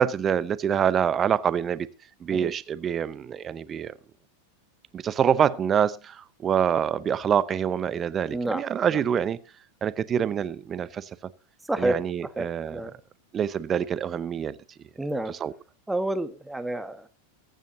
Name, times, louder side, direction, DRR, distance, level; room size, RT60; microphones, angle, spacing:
voice 1, 0.0-1.9 2.2-3.9 4.9-9.4 9.8-11.1 11.8-12.8 13.3-14.6 15.3-15.5, right 8 dB, 25° right, 0.8 m, -25 dB
voice 2, 8.3-8.6 8.9-9.0 11.7-12.9 15.0-15.3 15.9-17.1, right 1 dB, 5° right, 1.4 m, -30 dB
23.0 x 9.2 x 2.8 m
figure-of-eight pair, 90°, 0 cm